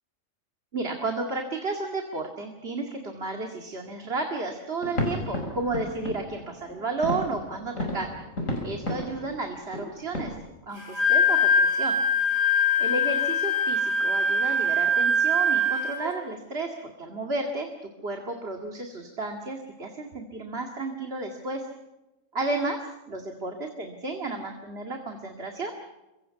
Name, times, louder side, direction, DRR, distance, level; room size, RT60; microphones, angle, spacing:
voice 1, 0.7-8.1 8.6-10.3 10.6-12.0 12.8-17.7 18.0-21.7 22.3-22.8 23.1-25.9, right 3 dB, 50° right, 3 dB, 2.5 m, -32 dB
sound 1, 4.8-10.4, left 1 dB, 75° left, 6.3 m, -33 dB
Wind instrument woodwind instrument, 10.8-16.1, left 2 dB, 20° left, 5.3 m, -23 dB
28.0 x 24.0 x 5.8 m, 1.0 s
omnidirectional pair, 1.4 m